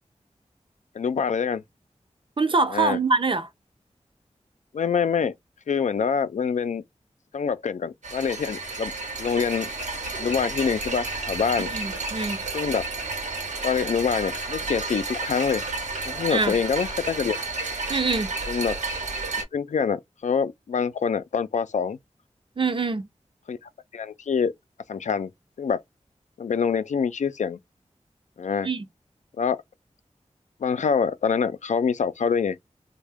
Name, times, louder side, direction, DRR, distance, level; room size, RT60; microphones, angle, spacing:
voice 1, 0.9-1.6 2.7-3.0 4.7-5.3 5.7-6.8 7.3-8.9 9.2-9.7 10.2-11.7 12.5-12.8 13.6-15.6 16.1-17.4 18.5-18.8 19.4-22.0 23.5-23.6 23.9-24.5 24.9-25.3 25.6-25.8 26.4-27.6 28.4-28.7 29.4-29.6 30.6-32.6, left 6 dB, 85° left, 0.4 m, -25 dB
voice 2, 2.4-3.5 11.7-12.4 16.3-16.5 17.9-18.3 22.6-23.0 28.6-28.9, right 4 dB, 45° right, 0.5 m, -24 dB
sound 1, 8.0-19.4, right 3 dB, 90° right, 0.9 m, -31 dB
3.5 x 2.2 x 3.4 m
wide cardioid pair, 70°, 12 cm